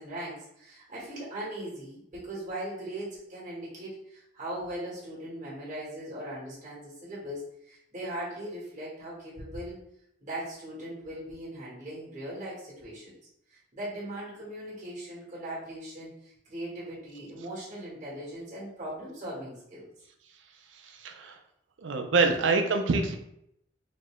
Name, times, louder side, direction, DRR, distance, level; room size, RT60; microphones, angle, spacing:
voice 1, 0.0-9.8 10.2-13.1 13.5-19.9, right 1 dB, 40° right, -6 dB, 1.3 m, -39 dB
voice 2, 20.7-21.4 21.8-23.2, right 4 dB, 75° right, 5 dB, 0.5 m, -26 dB
3.7 x 2.2 x 3.5 m, 0.76 s
head